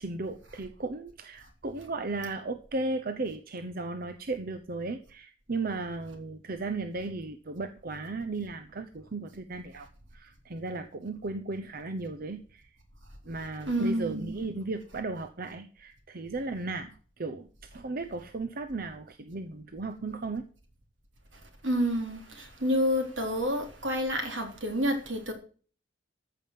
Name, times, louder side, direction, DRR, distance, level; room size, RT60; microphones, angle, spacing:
voice 1, 0.0-9.9 10.1-12.6 13.3-20.5, right 3 dB, 50° right, 0.8 m, -35 dB
voice 2, 13.7-14.4 21.6-25.3, equal, 80° right, 3.6 m, -29 dB
14.0 x 5.5 x 7.5 m
head